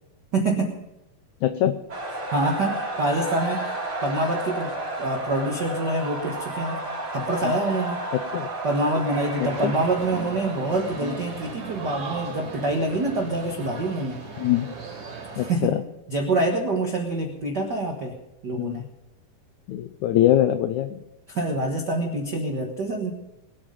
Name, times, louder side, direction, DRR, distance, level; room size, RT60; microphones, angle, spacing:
voice 1, 0.3-0.7 2.3-3.7 4.0-6.8 7.1-8.0 8.6-14.2 15.4-15.7 16.1-18.1 18.4-18.8 21.3-23.1, right 2 dB, 80° right, 2 dB, 0.9 m, -26 dB
voice 2, 1.4-1.7 8.3-8.5 9.4-9.7 11.0-11.2 14.4-14.7 15.4-15.8 18.6-18.9 19.7-21.0, left 12 dB, 85° left, 9 dB, 1.7 m, -23 dB
sound 1, 1.9-15.7, right 2 dB, 30° right, 3.3 m, -34 dB
sound 2, 9.4-15.5, right 5 dB, 50° right, 3.7 m, -37 dB
21.5 x 8.6 x 5.3 m, 0.92 s
omnidirectional pair, 4.3 m